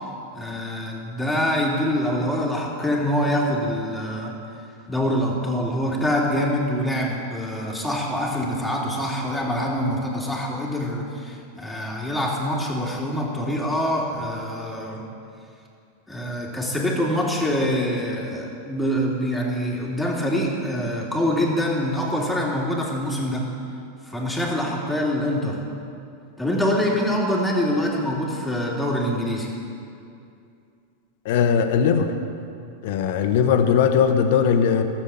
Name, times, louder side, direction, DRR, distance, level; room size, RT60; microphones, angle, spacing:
voice 1, 0.3-4.3 4.9-15.1 16.1-23.5 24.1-25.6 26.4-29.5, equal, 5° left, -3 dB, 2.5 m, -25 dB
voice 2, 31.2-32.1 32.8-34.8, left 7 dB, 65° left, 7 dB, 1.0 m, -19 dB
13.5 x 7.4 x 7.0 m, 2.5 s
hypercardioid pair, 110°, 0 cm